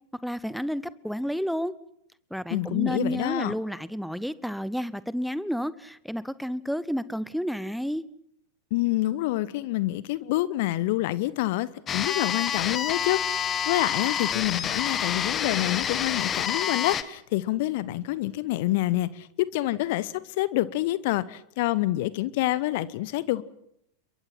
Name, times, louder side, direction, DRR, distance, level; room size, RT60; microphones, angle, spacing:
voice 1, 0.2-1.7 2.3-8.0, equal, ahead, 0.9 m, -31 dB
voice 2, 2.5-3.5 8.7-19.3 19.5-23.4, left 16 dB, 50° left, 0.9 m, -27 dB
sound 1, 11.9-17.0, left 8 dB, 25° left, 1.3 m, -28 dB
29.5 x 22.5 x 6.0 m
figure-of-eight pair, 90°, 0 cm